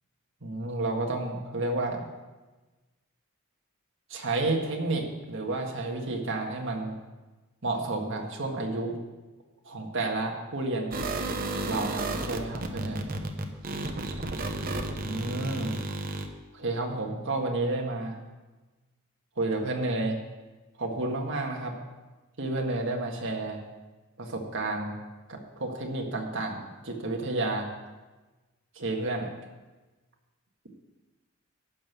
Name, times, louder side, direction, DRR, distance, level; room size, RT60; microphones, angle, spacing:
voice 1, 0.4-2.1 4.1-7.0 7.6-9.0 9.7-11.0 11.6-13.0 15.0-15.8 16.5-18.2 19.4-20.2 20.8-21.7 22.4-23.6 24.2-25.0 25.3-27.7 28.8-29.3, right 2 dB, 60° right, 1 dB, 1.8 m, -31 dB
sound 1, 10.9-16.3, right 2 dB, 45° right, 1.0 m, -32 dB
12.0 x 5.4 x 8.2 m, 1.2 s
head